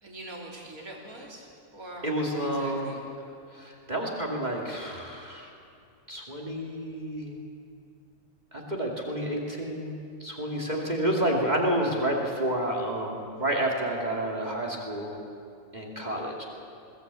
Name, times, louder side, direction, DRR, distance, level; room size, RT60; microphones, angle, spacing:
voice 1, 0.0-1.5 1.7-3.0, right 1 dB, 75° right, -2 dB, 4.0 m, -43 dB
voice 2, 2.0-2.9 3.5-5.5 6.1-7.4 8.5-15.2 15.7-16.4, right 1 dB, 30° right, -1 dB, 2.5 m, -30 dB
21.5 x 17.0 x 8.2 m, 2.5 s
omnidirectional pair, 1.5 m